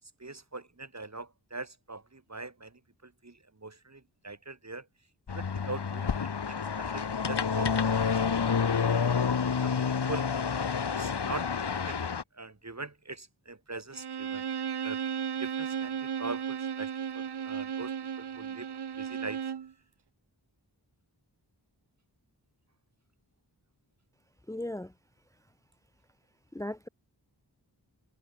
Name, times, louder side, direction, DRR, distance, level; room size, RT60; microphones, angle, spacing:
voice 1, 0.2-4.9 5.3-8.2 8.5-8.9 9.5-10.3 10.9-14.4 14.8-15.0 15.4-18.7 19.0-19.4, right 3 dB, 40° right, 1.7 m, -42 dB
sound 1, 5.3-12.2, left 6 dB, 70° left, 1.0 m, -29 dB
Bowed string instrument, 13.9-19.7, right 8 dB, 70° right, 0.7 m, -35 dB
voice 2, 24.5-24.9 26.5-26.9, left 1 dB, 10° left, 0.6 m, -36 dB
wide cardioid pair, 40°, 42 cm